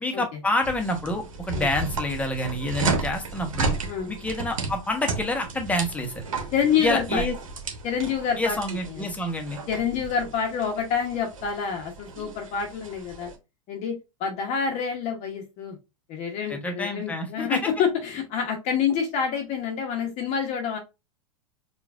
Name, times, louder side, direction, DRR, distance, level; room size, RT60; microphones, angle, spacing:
voice 1, 0.0-3.7 4.1-6.2 6.8-7.3 8.4-9.6 16.5-17.6, left 1 dB, 10° left, 4 dB, 0.9 m, -28 dB
sound 1, 0.6-13.4, right 4 dB, 85° right, 0.9 m, -33 dB
voice 2, 6.5-7.2 7.8-8.6 8.9-9.1 9.7-13.3 13.7-13.9 14.2-15.8 16.1-20.8, left 7 dB, 45° left, 2 dB, 0.9 m, -27 dB
4.7 x 2.4 x 2.4 m, 0.25 s
hypercardioid pair, 100°, 17 cm